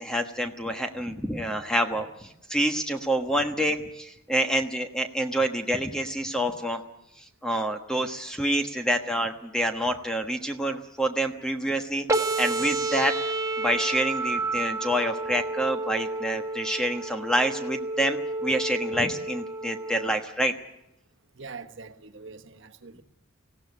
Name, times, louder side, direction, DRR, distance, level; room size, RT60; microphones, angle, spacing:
voice 1, 0.0-6.8 7.2-13.1 13.6-20.5, right 1 dB, 5° left, 1.2 m, -27 dB
sound 1, 12.1-20.1, right 2 dB, 15° right, 1.4 m, -30 dB
voice 2, 21.4-23.0, right 4 dB, 55° right, 1.3 m, -43 dB
19.0 x 16.5 x 9.8 m
head